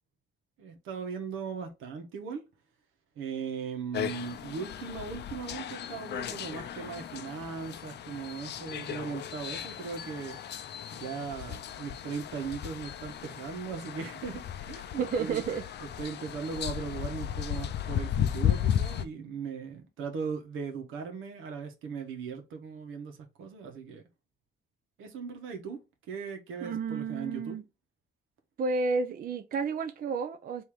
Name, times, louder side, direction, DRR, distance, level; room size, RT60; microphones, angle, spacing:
voice 1, 0.6-2.4 3.2-10.4 10.9-15.4 16.0-24.0 25.0-25.8 26.1-27.6, right 5 dB, 85° right, 1.1 m, -38 dB
sound 1, 3.9-19.1, left 10 dB, 60° left, 0.5 m, -35 dB
voice 2, 15.0-15.6 26.6-27.6 28.6-30.6, right 4 dB, 45° right, 0.5 m, -31 dB
3.5 x 2.7 x 4.6 m
cardioid pair, 90°, 20 cm